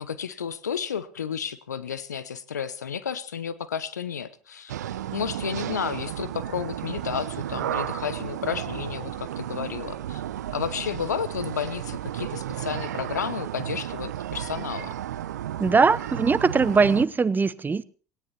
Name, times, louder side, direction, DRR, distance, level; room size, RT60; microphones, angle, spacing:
voice 1, 0.0-4.7 5.1-10.2 10.5-15.0, left 7 dB, 85° left, 17 dB, 1.0 m, -32 dB
sound 1, 4.7-17.1, right 11 dB, 80° right, 0.8 m, -33 dB
voice 2, 15.6-17.8, right 4 dB, 20° right, 19 dB, 0.8 m, -21 dB
18.0 x 16.5 x 4.3 m, 0.38 s
hypercardioid pair, 65°, 9 cm